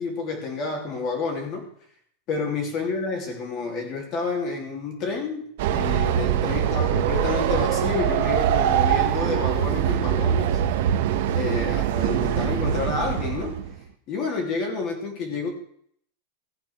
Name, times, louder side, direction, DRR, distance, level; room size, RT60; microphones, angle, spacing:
voice 1, 0.0-1.7 2.3-10.6 11.3-13.5 14.1-15.5, left 4 dB, 35° left, 2 dB, 3.2 m, -29 dB
Train, 5.6-13.7, right 10 dB, 60° right, 1.4 m, -23 dB
15.5 x 8.3 x 6.3 m, 0.62 s
supercardioid pair, 165°, 0 cm